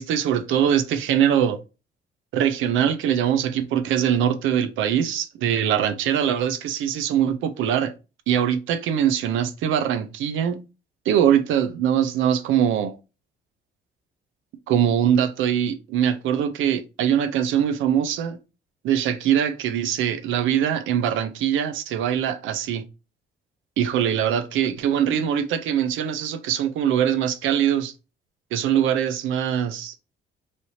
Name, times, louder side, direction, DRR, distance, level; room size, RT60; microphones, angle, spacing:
voice 1, 0.0-1.6 2.3-7.9 8.3-10.6 11.1-13.0 14.7-18.4 18.8-22.8 23.8-27.9 28.5-29.9, right 9 dB, 85° right, 0.6 m, -22 dB
3.3 x 2.8 x 4.1 m
cardioid pair, 125°, 20 cm